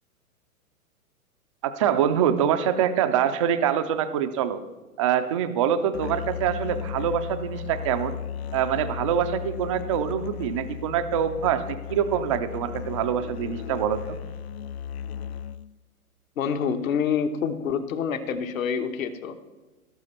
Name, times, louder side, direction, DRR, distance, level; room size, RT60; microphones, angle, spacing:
voice 1, 1.6-4.6 5.0-8.2 8.5-14.2, right 9 dB, 25° right, 9 dB, 0.4 m, -25 dB
Musical instrument, 5.9-15.7, left 8 dB, 45° left, 0.5 m, -35 dB
voice 2, 16.4-19.4, left 7 dB, 60° left, 8 dB, 1.3 m, -27 dB
18.0 x 6.2 x 4.3 m, 1.2 s
hypercardioid pair, 125°, 45 cm